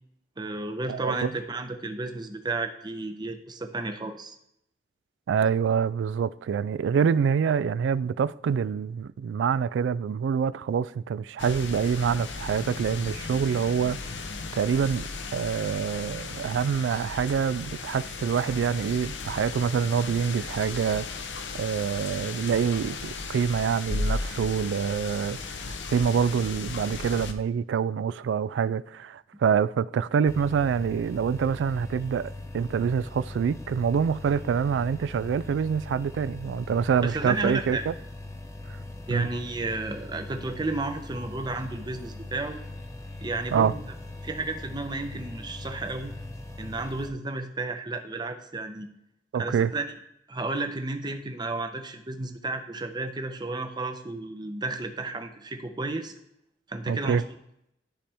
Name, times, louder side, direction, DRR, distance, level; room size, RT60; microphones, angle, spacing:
voice 1, 0.4-4.3 37.0-37.8 39.1-42.6 43.2-43.8 44.2-46.1 46.6-48.9 49.3-49.8 50.3-56.1 56.7-57.2, right 2 dB, 25° right, 0.7 m, -32 dB
voice 2, 0.9-1.3 5.3-14.0 14.5-21.1 21.5-37.9 39.1-39.3 43.5-43.7 49.3-49.7 56.9-57.2, right 7 dB, 85° right, 0.3 m, -26 dB
sound 1, 11.4-27.3, left 4 dB, 90° left, 0.7 m, -35 dB
sound 2, 30.3-47.1, left 2 dB, 15° left, 0.7 m, -40 dB
12.5 x 4.3 x 3.4 m
head